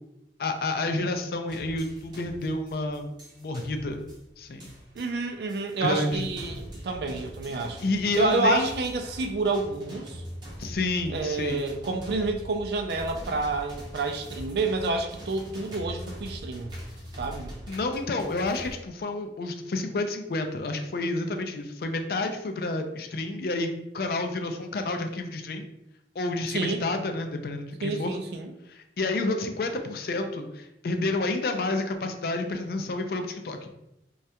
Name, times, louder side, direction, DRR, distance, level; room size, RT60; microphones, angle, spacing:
voice 1, 0.4-3.1 3.4-4.1 4.4-4.7 5.8-6.3 7.8-8.8 10.6-11.6 17.7-25.6 26.2-28.2 28.7-33.7, left 2 dB, 55° left, 5 dB, 0.3 m, -29 dB
sound 1, 1.5-18.7, equal, 25° right, 0.6 m, -42 dB
voice 2, 4.9-7.8 8.2-10.2 11.1-16.7 17.2-17.5 26.5-26.8 27.8-28.5, right 3 dB, 65° right, 5 dB, 0.4 m, -28 dB
3.2 x 2.3 x 2.8 m, 0.86 s
head